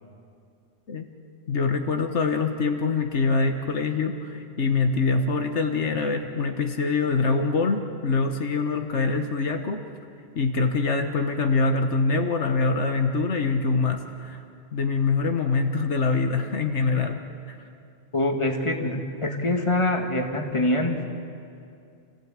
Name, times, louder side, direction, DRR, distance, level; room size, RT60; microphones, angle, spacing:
voice 1, 1.5-9.8 10.3-14.4 14.7-17.5, left 4 dB, 75° left, 5 dB, 1.6 m, -24 dB
voice 2, 18.1-21.1, left 1 dB, 25° left, 2 dB, 2.2 m, -24 dB
29.0 x 15.5 x 9.0 m, 2.5 s
omnidirectional pair, 1.2 m